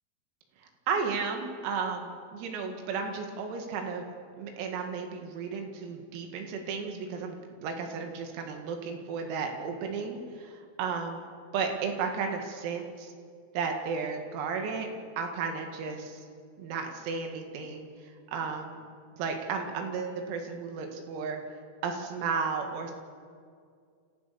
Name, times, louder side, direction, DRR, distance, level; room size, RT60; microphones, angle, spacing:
voice 1, 0.9-4.1 4.3-7.4 7.6-11.2 11.5-13.1 13.5-14.9 15.2-16.3 16.6-17.9 18.3-18.8 19.2-21.4 21.8-22.9, right 5 dB, 90° right, 4 dB, 4.7 m, -33 dB
28.0 x 14.0 x 6.9 m, 2.2 s
omnidirectional pair, 6.0 m